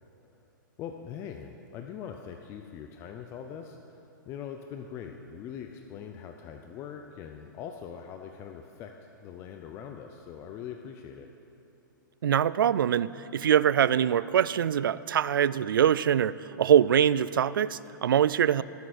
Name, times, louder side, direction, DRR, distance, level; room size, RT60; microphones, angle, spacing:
voice 1, 0.8-4.0 4.3-11.3, left 8 dB, 25° left, 4 dB, 0.5 m, -42 dB
voice 2, 12.2-18.6, right 9 dB, 85° right, 18 dB, 0.4 m, -23 dB
19.0 x 6.9 x 4.3 m, 2.9 s
hypercardioid pair, 150°, 11 cm